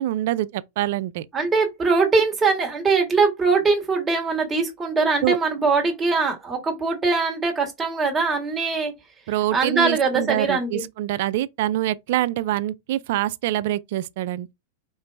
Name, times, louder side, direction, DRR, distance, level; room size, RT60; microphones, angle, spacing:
voice 1, 0.0-1.3 5.2-5.4 9.3-14.5, right 14 dB, 65° right, 0.4 m, -25 dB
voice 2, 1.3-8.9 9.5-10.8, right 4 dB, 20° right, 1.6 m, -22 dB
4.5 x 3.0 x 3.3 m
hypercardioid pair, 125°, 0 cm